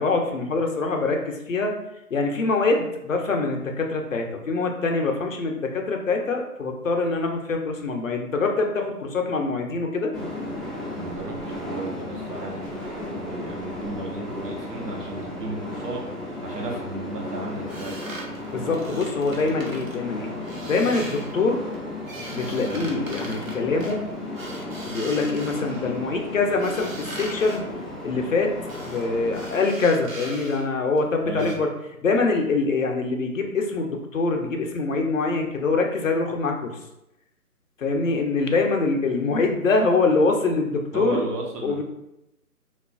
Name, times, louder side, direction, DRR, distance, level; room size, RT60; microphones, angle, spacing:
voice 1, 0.0-1.7 2.1-10.1 18.5-20.3 20.6-21.6 22.3-24.0 24.8-27.6 28.0-28.5 28.8-31.7 32.0-36.7 37.8-41.2 41.6-41.8, left 3 dB, 60° left, 3 dB, 0.5 m, -24 dB
sound 1, 10.1-29.6, left 2 dB, ahead, 0.4 m, -34 dB
voice 2, 10.9-12.8 13.1-16.0 16.4-18.0 22.6-22.9 31.2-31.6 40.9-41.8, right 2 dB, 90° right, 0 dB, 0.9 m, -34 dB
sound 2, 17.7-20.0 20.4-21.4 21.7-26.0 26.6-27.6 28.7-29.1 29.3-30.7 31.0-31.1 31.4-31.6, right 2 dB, 60° right, 0.6 m, -40 dB
2.7 x 2.3 x 2.3 m, 0.88 s
hypercardioid pair, 175°, 46 cm